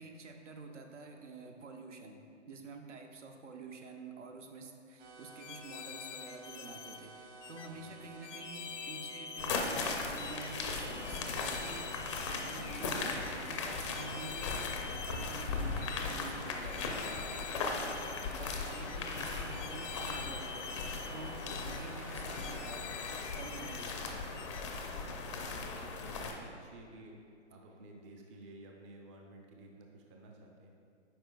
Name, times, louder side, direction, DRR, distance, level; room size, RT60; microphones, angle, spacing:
voice 1, 0.0-11.9 12.3-20.7 21.1-22.9 23.3-24.3 25.3-25.5, right 4 dB, 80° right, 4 dB, 0.8 m, -49 dB
sound 1, 5.0-24.0, right 2 dB, 45° right, 0.9 m, -52 dB
sound 2, 5.4-7.0 7.4-7.7 8.2-9.8 10.2-10.5 11.0-12.6 13.1-13.3 13.9-15.5 15.8-16.2 16.7-18.3 18.7-19.0 19.5-21.1 21.5-21.8 22.3-23.9 24.4-24.6, left 8 dB, 80° left, 0.5 m, -47 dB
voice 2, 7.7-8.2 18.9-19.2 23.9-24.0 25.0-27.2 27.5-30.7, right 2 dB, 25° right, 0 dB, 0.5 m, -54 dB
sound 3, 9.4-26.3, left 4 dB, 25° left, 0.4 m, -38 dB
8.6 x 5.1 x 2.3 m, 2.4 s
hypercardioid pair, 135°, 36 cm